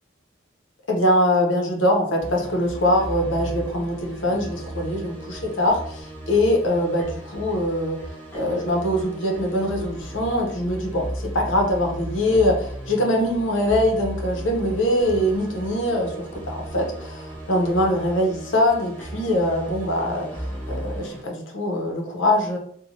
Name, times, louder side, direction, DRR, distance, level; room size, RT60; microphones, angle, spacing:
voice 1, 0.9-5.8 6.3-8.0 8.3-20.4 20.7-22.6, left 1 dB, 70° left, 1 dB, 0.7 m, -23 dB
sound 1, 2.2-21.2, right 1 dB, 10° left, 0.6 m, -35 dB
3.0 x 2.1 x 2.6 m, 0.64 s
head